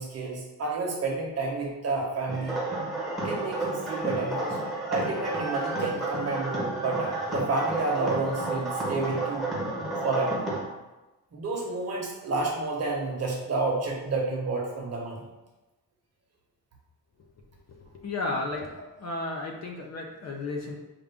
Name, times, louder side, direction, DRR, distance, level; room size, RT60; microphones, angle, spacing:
voice 1, 0.0-2.6 3.2-4.6 4.9-9.5 10.0-10.4 11.3-15.2, right 3 dB, 40° right, -2 dB, 1.0 m, -30 dB
sound 1, 2.3-10.6, right 2 dB, ahead, 0.9 m, -31 dB
voice 2, 17.7-20.7, left 2 dB, 40° left, 1 dB, 0.6 m, -34 dB
5.1 x 2.5 x 3.4 m, 1.1 s
wide cardioid pair, 170°, 39 cm